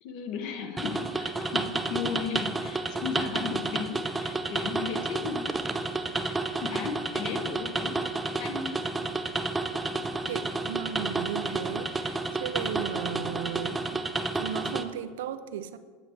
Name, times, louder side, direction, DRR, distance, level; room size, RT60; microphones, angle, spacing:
voice 1, 0.0-5.6 6.2-8.9 9.7-9.8, left 6 dB, 45° left, 6 dB, 0.8 m, -36 dB
sound 1, 0.8-14.8, right 3 dB, 10° right, 0.3 m, -31 dB
voice 2, 10.3-14.0 14.3-15.8, right 9 dB, 85° right, 12 dB, 0.5 m, -36 dB
7.9 x 4.5 x 7.0 m, 1.5 s
supercardioid pair, 170°, 0 cm